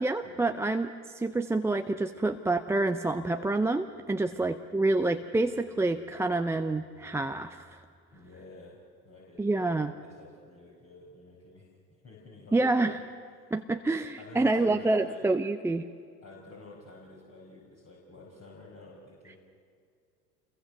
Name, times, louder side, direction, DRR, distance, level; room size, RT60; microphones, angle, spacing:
voice 1, 0.0-7.8 9.4-9.9 12.5-13.0 13.5-15.9, right 2 dB, 5° right, 7 dB, 0.5 m, -28 dB
voice 2, 8.1-8.8 9.0-9.7 10.0-11.7 12.0-13.1 14.2-15.3 16.2-19.4, left 3 dB, 30° left, -3 dB, 5.5 m, -50 dB
27.5 x 22.0 x 6.6 m, 2.2 s
hypercardioid pair, 80°, 48 cm